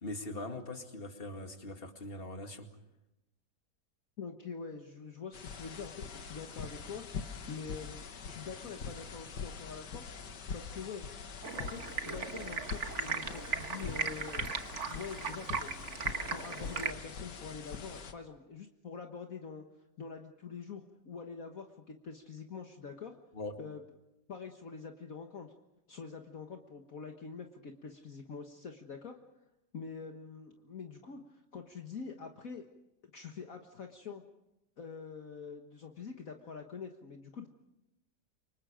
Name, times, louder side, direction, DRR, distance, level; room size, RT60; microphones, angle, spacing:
voice 1, 0.0-2.7 23.3-23.6, left 2 dB, 35° left, 5 dB, 2.4 m, -41 dB
voice 2, 4.2-7.0 7.5-10.0 10.5-11.1 11.4-15.8 16.3-19.6 20.0-23.2 23.6-23.8 24.3-25.5 25.9-29.2 29.7-32.7 33.1-34.2 34.8-37.5, left 5 dB, 55° left, 3 dB, 1.8 m, -45 dB
sound 1, 5.3-18.1, left 5 dB, 85° left, 2.0 m, -44 dB
Stream, 11.4-16.9, right 5 dB, 45° right, 1.5 m, -37 dB
29.0 x 25.5 x 5.1 m, 0.90 s
omnidirectional pair, 1.8 m